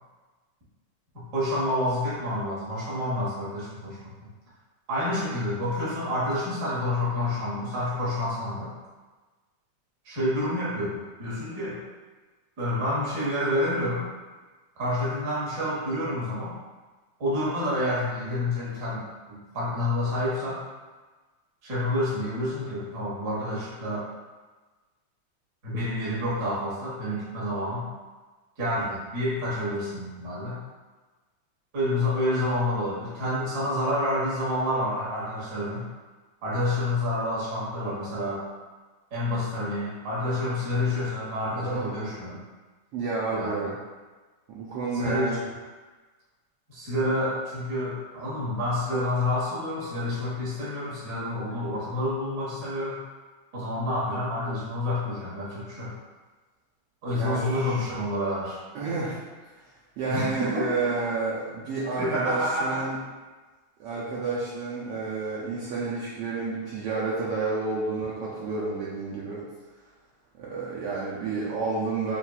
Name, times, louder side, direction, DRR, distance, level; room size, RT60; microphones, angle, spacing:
voice 1, 1.3-4.0 4.9-8.7 10.0-11.8 12.6-14.0 14.8-16.6 17.2-20.6 21.6-24.0 25.6-27.8 28.6-30.6 31.7-35.8 36.4-38.4 39.1-42.4 43.3-43.7 44.9-45.4 46.7-53.0 53.5-55.9 57.0-58.6 60.0-60.9 62.0-62.8, left 1 dB, 45° right, -8 dB, 1.4 m, -28 dB
voice 2, 41.6-41.9 42.9-43.7 44.5-45.4 57.2-57.8 58.7-59.7 60.0-63.0 63.8-69.4 70.4-72.2, right 4 dB, 85° right, -6 dB, 1.3 m, -30 dB
7.0 x 2.5 x 2.3 m, 1.3 s
omnidirectional pair, 3.4 m